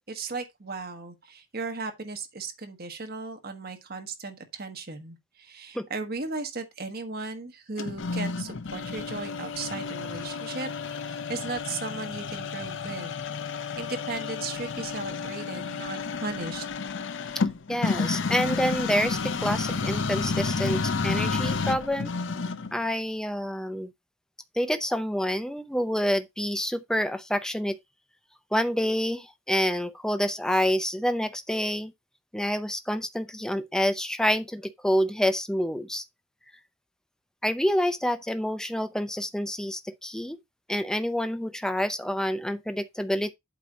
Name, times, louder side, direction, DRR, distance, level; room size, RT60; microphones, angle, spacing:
voice 1, 0.1-13.2 13.5-16.6, right 3 dB, 45° right, 1.3 m, -36 dB
sound 1, 7.8-22.8, left 4 dB, 55° left, 0.6 m, -31 dB
voice 2, 17.7-22.1 22.7-23.9 24.5-27.8 28.5-31.9 32.3-36.0 37.4-40.4 40.7-43.3, equal, 5° left, 0.5 m, -27 dB
8.3 x 2.9 x 6.0 m
head